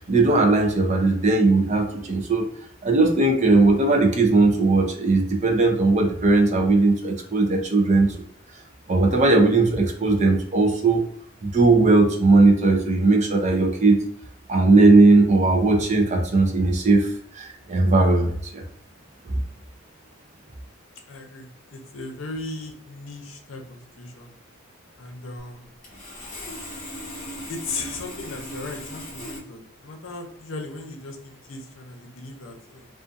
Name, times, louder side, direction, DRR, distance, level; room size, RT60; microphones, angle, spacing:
voice 1, 0.1-2.5 2.8-8.1 8.9-11.0 11.4-14.0 14.5-18.6, right 3 dB, 35° right, 2 dB, 0.5 m, -18 dB
voice 2, 21.1-24.3 25.0-25.7 27.5-32.9, left 3 dB, 75° left, 3 dB, 0.6 m, -37 dB
Sawing, 25.8-29.4, equal, 40° left, 0.9 m, -37 dB
2.5 x 2.4 x 2.4 m, 0.67 s
head